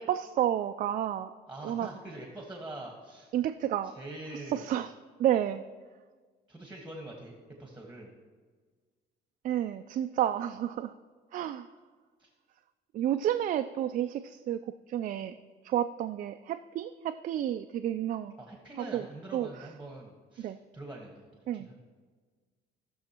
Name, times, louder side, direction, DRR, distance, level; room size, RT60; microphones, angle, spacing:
voice 1, 0.0-1.3 1.6-1.9 3.3-3.9 4.5-4.9 5.2-5.6 9.4-10.9 11.3-11.7 12.9-15.3 15.6-18.4 18.9-19.1 19.3-19.5 20.4-20.6 21.5-21.7, right 11 dB, 50° right, 7 dB, 0.4 m, -30 dB
voice 2, 1.4-3.3 3.8-4.7 6.5-8.1 12.2-12.3 18.4-21.8, right 2 dB, 10° right, 0 dB, 1.5 m, -44 dB
17.5 x 6.4 x 2.9 m, 1.5 s
cardioid pair, 110°, 17 cm